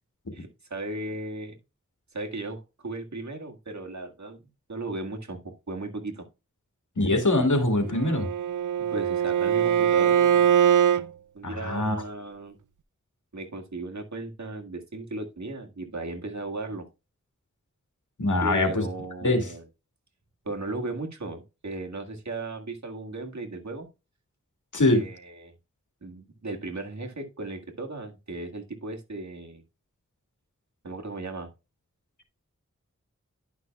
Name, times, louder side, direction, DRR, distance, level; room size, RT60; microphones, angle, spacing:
voice 1, 0.3-1.6 2.1-6.3 8.8-10.5 11.3-12.6 13.3-16.8 18.4-19.7 20.5-23.9 24.9-25.5 26.0-29.6 30.8-31.5, right 2 dB, 65° right, 1.8 m, -36 dB
voice 2, 7.0-8.3 11.4-12.0 18.2-18.9 19.2-19.5 24.7-25.0, left 2 dB, 75° left, 2.1 m, -23 dB
Bowed string instrument, 7.9-11.1, right 9 dB, 85° right, 0.5 m, -22 dB
11.5 x 5.8 x 2.3 m
wide cardioid pair, 45°, 30 cm